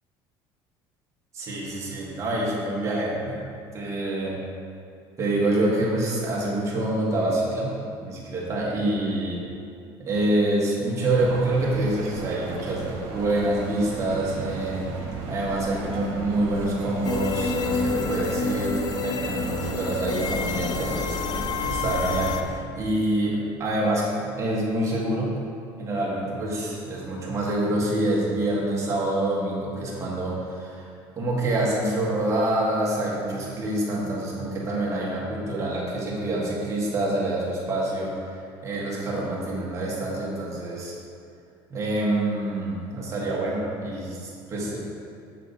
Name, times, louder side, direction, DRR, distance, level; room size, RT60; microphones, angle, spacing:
voice 1, 1.3-3.4 3.7-4.4 5.2-7.7 8.0-9.4 10.0-14.8 15.3-21.2 21.7-25.3 25.8-30.9 31.2-38.1 38.6-41.0 41.7-44.8, right 1 dB, 30° right, -5 dB, 1.9 m, -26 dB
sound 1, 11.1-22.4, right 4 dB, 85° right, 1.2 m, -35 dB
sound 2, 17.0-22.4, left 5 dB, 40° left, 0.5 m, -29 dB
7.5 x 6.5 x 4.2 m, 2.5 s
cardioid pair, 135°, 10 cm